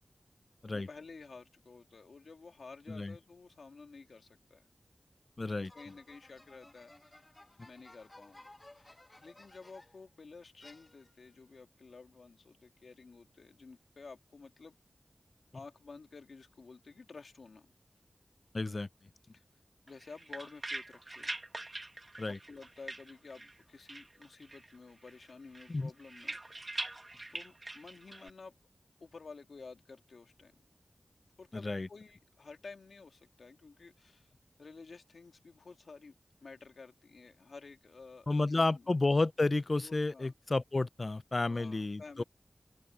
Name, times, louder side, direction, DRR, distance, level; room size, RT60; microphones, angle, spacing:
voice 1, 0.7-4.6 5.6-7.2 7.6-14.8 15.5-17.7 19.3-19.4 19.9-21.4 22.5-26.8 27.3-28.5 29.0-30.5 31.4-34.3 34.6-36.1 36.4-38.9 39.7-40.3 41.5-42.2, left 4 dB, 85° left, 2.6 m, -52 dB
voice 2, 5.4-5.7 18.5-18.9 22.2-22.4 25.7-25.9 31.5-31.9 38.3-42.2, left 2 dB, 50° left, 0.5 m, -31 dB
sound 1, 5.7-10.1 10.6-11.4, left 1 dB, 30° left, 1.5 m, -58 dB
sound 2, 19.9-23.6 23.9-24.8 25.0-28.3, right 2 dB, 40° right, 1.5 m, -43 dB
open air
wide cardioid pair, 50°, 0 cm